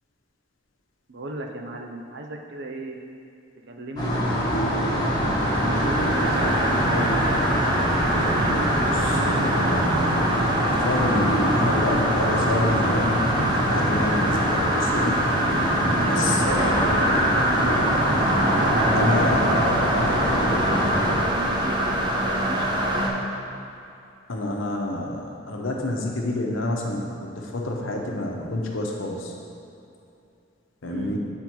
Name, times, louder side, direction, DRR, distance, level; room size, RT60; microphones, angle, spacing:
voice 1, 1.1-3.0 3.7-4.9 5.5-7.2 15.7-17.8 18.4-20.8 21.2-23.3 30.8-31.2, right 2 dB, 60° right, 2 dB, 0.7 m, -35 dB
sound 1, 4.0-21.1, equal, 20° left, 1.2 m, -24 dB
sound 2, 4.4-23.1, right 1 dB, 25° right, 0.7 m, -25 dB
voice 2, 8.8-15.2 16.1-16.5 17.6-17.9 18.9-19.4 24.3-27.1 27.4-29.3 30.8-31.2, left 1 dB, 75° left, 0 dB, 0.9 m, -28 dB
8.7 x 3.7 x 4.5 m, 2.6 s
head